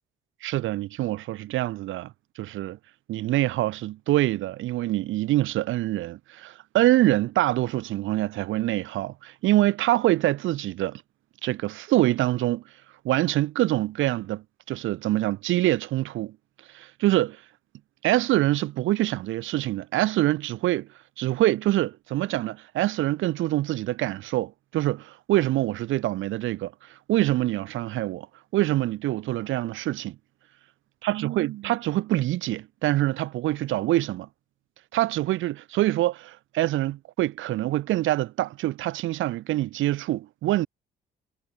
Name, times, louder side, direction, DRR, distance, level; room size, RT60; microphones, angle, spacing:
voice 1, 0.4-2.8 3.1-11.0 11.4-12.6 13.0-16.4 16.7-17.4 18.0-20.9 21.2-28.3 28.5-30.2 31.0-34.3 34.9-40.7, right 15 dB, 85° right, 0.9 m, -25 dB
cardioid pair, 90°, 20 cm